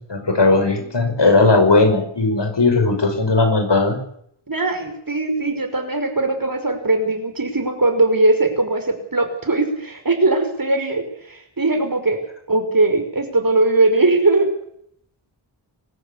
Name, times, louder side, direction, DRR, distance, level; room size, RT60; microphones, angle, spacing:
voice 1, 0.1-4.0, left 3 dB, 60° left, 7 dB, 5.9 m, -17 dB
voice 2, 4.5-12.2 12.5-14.5, right 2 dB, 45° right, 7 dB, 5.4 m, -20 dB
25.5 x 14.5 x 8.5 m, 0.68 s
wide cardioid pair, 70°, 48 cm